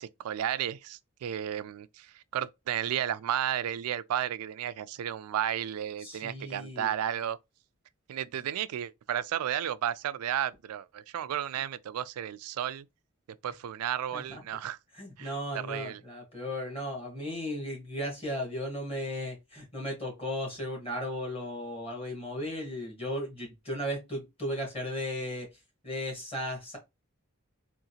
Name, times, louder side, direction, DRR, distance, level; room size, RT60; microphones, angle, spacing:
voice 1, 0.0-7.4 8.1-12.9 13.4-14.8 15.2-16.0, right 10 dB, 90° right, 0.3 m, -33 dB
voice 2, 6.0-6.9 14.1-14.4 14.9-25.5 25.8-26.8, equal, 25° left, 1.5 m, -36 dB
3.7 x 2.4 x 2.7 m
head